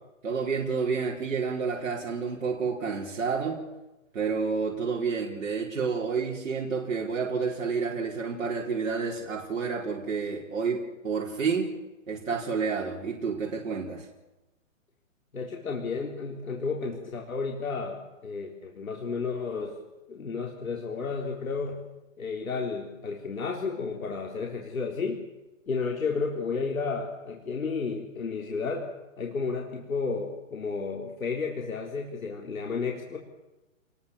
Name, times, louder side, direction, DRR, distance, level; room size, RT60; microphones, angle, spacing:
voice 1, 0.2-3.6 4.1-11.7 12.1-14.1, right 5 dB, 75° right, -2 dB, 4.8 m, -29 dB
voice 2, 15.3-19.8 20.1-21.8 22.2-25.2 25.7-28.9 29.2-33.2, left 4 dB, 85° left, 0 dB, 4.3 m, -32 dB
28.5 x 22.0 x 7.2 m, 1.0 s
hypercardioid pair, 155°, 40 cm